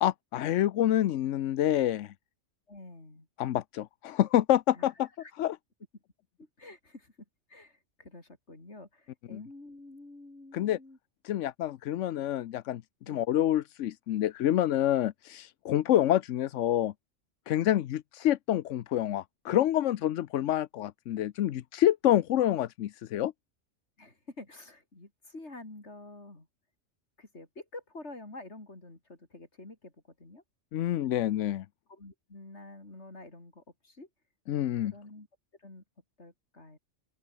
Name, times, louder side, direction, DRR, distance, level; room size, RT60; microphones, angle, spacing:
voice 1, 0.0-2.1 3.4-5.1 5.4-5.6 9.3-9.4 10.5-10.8 11.2-12.8 13.1-16.9 17.5-23.3 30.7-31.7 34.5-34.9, left 12 dB, 80° left, 1.0 m, -27 dB
voice 2, 2.7-3.3 4.7-5.3 6.4-7.1 7.5-11.0 13.0-13.2 15.9-16.0 24.0-26.5 27.2-29.9 30.2-30.4 31.9-34.1 34.8-35.3 35.6-35.8 36.2-36.8, left 2 dB, 65° left, 5.0 m, -48 dB
open air
omnidirectional pair, 1.2 m